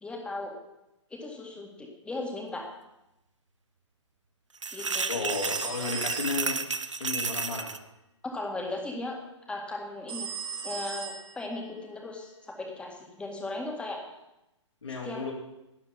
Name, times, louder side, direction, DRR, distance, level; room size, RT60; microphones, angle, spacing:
voice 1, 0.0-0.5 1.1-2.7 4.7-5.1 8.2-9.2 9.5-10.3 10.6-14.0 15.0-15.2, left 2 dB, 5° left, 0 dB, 1.9 m, -37 dB
sound 1, 4.6-7.8, right 4 dB, 75° right, 0.8 m, -32 dB
voice 2, 5.1-6.6 7.0-7.8 14.8-15.3, left 4 dB, 70° left, -3 dB, 4.1 m, -33 dB
sound 2, 5.3-6.7 10.1-11.7, right 6 dB, 50° right, 1.7 m, -37 dB
12.0 x 9.6 x 5.6 m, 0.91 s
figure-of-eight pair, 120°, 16 cm